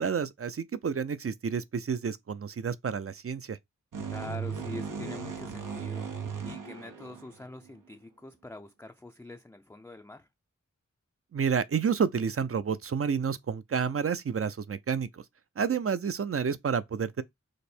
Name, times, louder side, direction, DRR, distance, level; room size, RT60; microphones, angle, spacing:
voice 1, 0.0-3.6 11.3-15.2 15.6-17.2, right 6 dB, 45° right, 0.5 m, -30 dB
sound 1, 3.9-7.7, right 6 dB, 85° right, 0.8 m, -37 dB
voice 2, 4.0-10.3, left 2 dB, 10° left, 0.4 m, -44 dB
5.1 x 2.0 x 4.3 m
wide cardioid pair, 45°, 31 cm